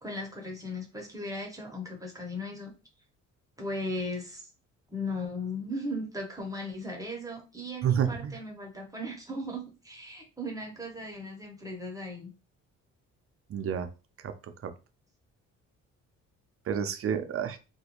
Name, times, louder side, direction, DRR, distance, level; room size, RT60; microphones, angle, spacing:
voice 1, 0.0-2.7 3.6-4.5 4.9-12.3, left 1 dB, 10° right, 0 dB, 0.8 m, -37 dB
voice 2, 7.8-8.4 13.5-13.9 14.2-14.7 16.7-17.6, right 8 dB, 50° right, 8 dB, 0.5 m, -30 dB
2.4 x 2.2 x 2.9 m, 0.30 s
cardioid pair, 90°, 30 cm